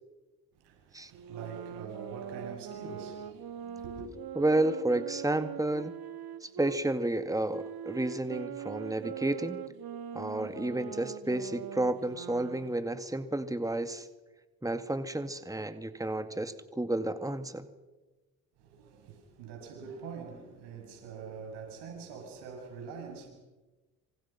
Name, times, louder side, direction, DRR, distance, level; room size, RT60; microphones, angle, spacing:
voice 1, 0.5-4.1 18.6-23.3, right 5 dB, 85° right, 7.3 m, -44 dB
sound 1, 1.1-6.8 7.5-12.9, right 9 dB, 65° right, 1.6 m, -42 dB
voice 2, 4.4-5.9 6.4-9.6 10.1-14.1 14.6-17.7, right 1 dB, 10° right, 2.2 m, -31 dB
26.5 x 26.0 x 5.9 m
supercardioid pair, 55°, 40 cm